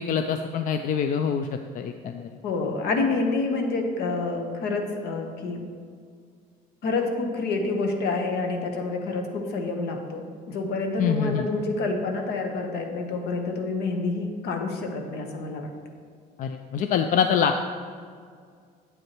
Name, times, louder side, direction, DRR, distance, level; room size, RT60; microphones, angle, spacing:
voice 1, 0.0-2.3 11.0-11.5 16.4-17.6, left 7 dB, 55° left, 7 dB, 0.4 m, -25 dB
voice 2, 2.4-5.6 6.8-15.7, left 3 dB, 75° left, 4 dB, 1.1 m, -28 dB
8.2 x 7.8 x 3.0 m, 2.1 s
cardioid pair, 110°, 17 cm